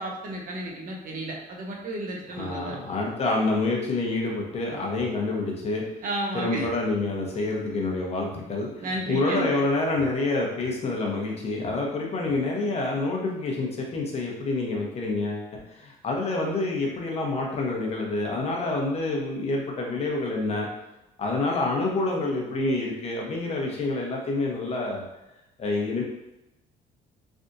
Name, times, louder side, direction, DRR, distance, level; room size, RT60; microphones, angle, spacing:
voice 1, 0.0-2.8 6.0-6.7 8.8-9.5, right 1 dB, 55° right, -1 dB, 0.9 m, -32 dB
voice 2, 2.4-5.8 6.3-15.5 15.8-20.7 21.2-25.0 25.6-26.0, left 2 dB, 40° left, -1 dB, 0.9 m, -27 dB
sound 1, 5.0-5.1 5.6-5.7 6.6-6.7 7.3-7.4 8.3-8.4 8.9-9.0 10.0-10.1 10.6-10.7 11.6-11.7 12.3-12.4, right 3 dB, 80° right, 1.0 m, -48 dB
3.4 x 2.4 x 2.7 m, 0.93 s
cardioid pair, 110°, 17 cm